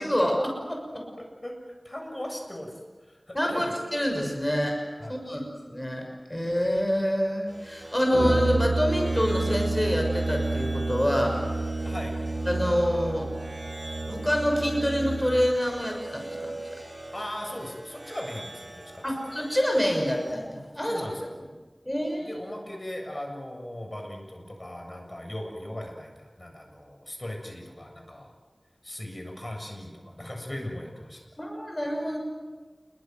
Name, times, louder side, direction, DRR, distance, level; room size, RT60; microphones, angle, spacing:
voice 1, 0.0-1.0 3.3-4.8 5.1-11.4 12.5-13.3 14.1-16.8 19.0-21.0 21.9-22.3 31.4-32.2, equal, 20° left, 2 dB, 6.3 m, -27 dB
voice 2, 0.9-1.6 1.8-2.8 3.1-3.7 5.0-5.2 11.8-12.1 17.1-19.0 20.8-21.3 22.2-28.3 28.8-31.2, left 1 dB, 40° left, 2 dB, 7.4 m, -38 dB
sound 1, 7.5-20.3, right 1 dB, 45° right, 6.7 m, -43 dB
Brass instrument, 8.1-15.6, right 2 dB, 70° right, 3.5 m, -29 dB
28.0 x 23.0 x 7.9 m, 1.3 s
wide cardioid pair, 45°, 0 cm